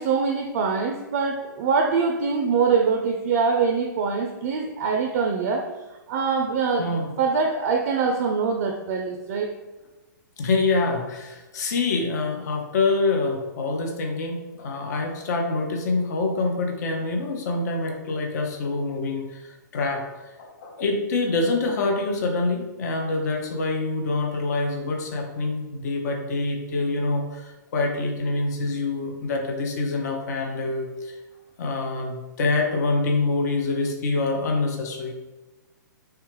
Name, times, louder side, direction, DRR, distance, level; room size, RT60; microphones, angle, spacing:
voice 1, 0.0-5.7 6.1-6.9 7.2-9.5, right 5 dB, 45° right, 3 dB, 0.4 m, -23 dB
voice 2, 10.4-20.0 20.4-31.2 31.6-35.1, left 3 dB, 55° left, 2 dB, 0.6 m, -26 dB
3.3 x 2.3 x 3.0 m, 1.1 s
hypercardioid pair, 125°, 11 cm